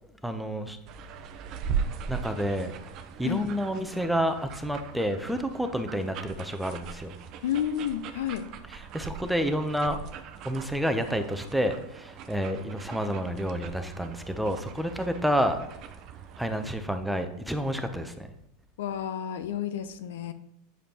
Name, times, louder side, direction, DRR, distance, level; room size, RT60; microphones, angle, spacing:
voice 1, 0.2-0.8 2.1-2.7 3.2-7.1 8.9-10.0 10.4-15.6 16.4-18.3, equal, ahead, 7 dB, 0.6 m, -29 dB
sound 1, 0.9-16.7, right 7 dB, 45° right, 0.6 m, -40 dB
voice 2, 7.4-8.5 18.8-20.3, left 9 dB, 75° left, 11 dB, 0.5 m, -31 dB
7.8 x 5.0 x 2.9 m, 0.78 s
hypercardioid pair, 110°, 0 cm